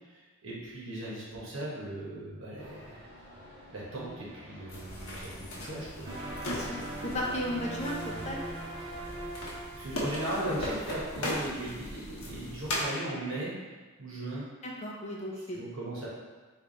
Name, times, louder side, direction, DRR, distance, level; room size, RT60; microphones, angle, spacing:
voice 1, 0.1-3.0 3.7-6.1 6.5-6.6 8.8-9.3 9.7-13.5 14.0-14.5 15.5-16.1, right 1 dB, 70° right, -6 dB, 1.2 m, -38 dB
sound 1, 2.6-9.6, equal, 50° right, 1.4 m, -50 dB
sound 2, 4.7-12.8, left 1 dB, 85° left, 0.9 m, -38 dB
sound 3, 6.0-12.0, right 2 dB, 20° right, 0.5 m, -42 dB
voice 2, 6.4-6.8 7.0-8.4 14.6-15.6, equal, 30° left, -2 dB, 0.5 m, -35 dB
3.4 x 2.5 x 3.9 m, 1.3 s
head